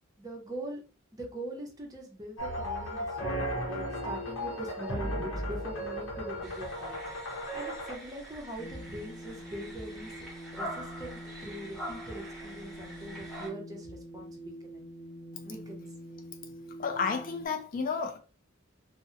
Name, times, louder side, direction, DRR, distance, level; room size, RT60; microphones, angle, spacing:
voice 1, 0.2-0.8 1.1-7.0 7.5-10.3 10.5-14.8 15.4-15.9, right 1 dB, 20° right, 0.6 m, -42 dB
sound 1, 2.4-7.9, equal, 90° left, 0.8 m, -35 dB
sound 2, 6.4-13.5, right 1 dB, ahead, 1.0 m, -44 dB
sound 3, 8.6-17.5, equal, 20° left, 1.1 m, -45 dB
voice 2, 16.8-18.2, left 5 dB, 45° left, 0.3 m, -31 dB
2.7 x 2.0 x 2.4 m
head